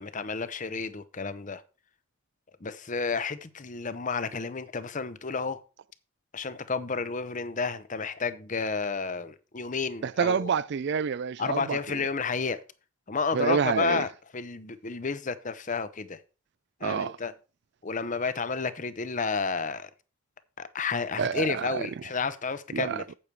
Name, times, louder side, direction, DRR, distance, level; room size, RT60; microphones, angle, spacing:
voice 1, 0.0-1.6 2.6-5.6 6.3-10.5 11.4-12.6 13.1-16.2 16.8-17.3 17.8-19.9 20.6-23.1, left 4 dB, 40° left, 0.8 m, -31 dB
voice 2, 10.0-12.1 13.3-14.0 16.8-17.2 21.2-21.9 22.7-23.2, right 6 dB, 55° right, 0.4 m, -28 dB
8.7 x 8.3 x 4.7 m
head